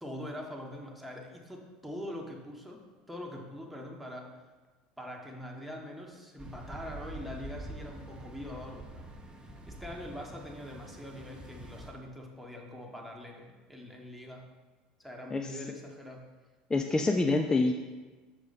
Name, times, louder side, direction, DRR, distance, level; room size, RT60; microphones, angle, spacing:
voice 1, 0.0-4.3 5.0-9.1 9.4-14.5 15.0-16.2 16.9-17.0, left 1 dB, ahead, -1 dB, 1.2 m, -43 dB
sound 1, 6.4-11.9, right 1 dB, 20° right, 0.8 m, -46 dB
voice 2, 16.7-17.7, left 3 dB, 15° left, 4 dB, 0.4 m, -26 dB
6.1 x 4.9 x 4.1 m, 1.3 s
hypercardioid pair, 80°, 4 cm